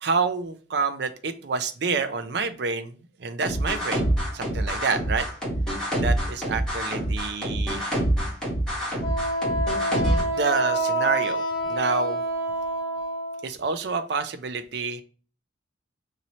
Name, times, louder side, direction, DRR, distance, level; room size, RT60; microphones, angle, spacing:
voice 1, 0.0-4.0 4.3-5.3 6.0-8.0 10.3-12.2 13.4-15.0, right 4 dB, 60° right, 9 dB, 0.5 m, -28 dB
sound 1, 3.4-10.2, right 1 dB, 5° left, 1.5 m, -26 dB
Wind instrument woodwind instrument, 9.0-13.5, right 1 dB, 25° left, 1.1 m, -27 dB
5.2 x 2.7 x 3.0 m, 0.38 s
head